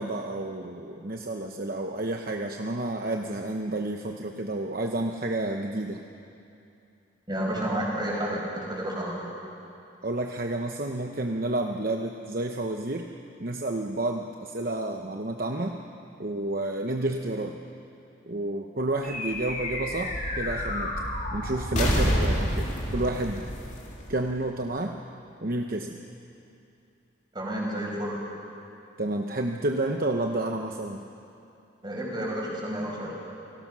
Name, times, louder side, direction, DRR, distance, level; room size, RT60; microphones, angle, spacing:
voice 1, 0.0-6.0 10.0-13.1 13.4-15.8 16.2-17.6 18.3-22.7 22.9-23.4 24.1-25.0 25.4-26.0 29.0-31.0, right 2 dB, 50° right, 3 dB, 0.9 m, -30 dB
voice 2, 7.3-9.3 27.3-28.2 31.8-33.1, right 1 dB, 25° right, -3 dB, 5.2 m, -30 dB
sound 1, 19.0-24.7, equal, 40° left, 3.2 m, -29 dB
29.0 x 19.0 x 6.2 m, 2.7 s
head